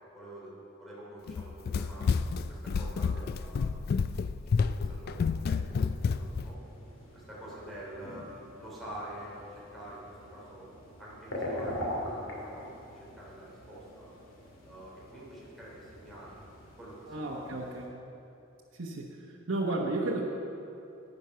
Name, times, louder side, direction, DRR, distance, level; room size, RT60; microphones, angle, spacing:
voice 1, 0.1-0.5 0.8-3.7 4.6-6.6 7.1-8.3 8.5-10.7 11.0-14.1 14.6-17.5, right 1 dB, ahead, -7 dB, 3.0 m, -47 dB
Run, 1.3-6.5, left 5 dB, 50° left, 0.3 m, -30 dB
sound 1, 6.2-17.9, left 1 dB, 90° left, 2.3 m, -43 dB
voice 2, 17.1-18.0 18.8-19.1 19.5-20.2, right 2 dB, 80° right, -2 dB, 1.0 m, -32 dB
10.5 x 9.1 x 5.6 m, 2.7 s
head